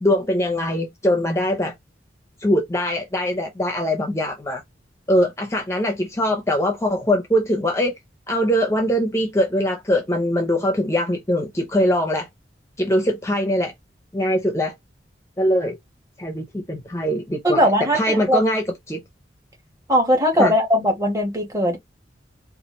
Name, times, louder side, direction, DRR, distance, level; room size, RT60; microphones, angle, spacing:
voice 1, 0.0-1.7 2.4-4.6 5.1-7.9 8.3-12.3 12.8-13.7 14.1-14.7 15.4-15.8 16.2-17.7 17.9-19.0 20.4-20.5, equal, 15° left, 0.5 m, -22 dB
voice 2, 17.4-18.4 19.9-21.8, equal, 20° right, 1.2 m, -19 dB
4.2 x 2.4 x 3.0 m
head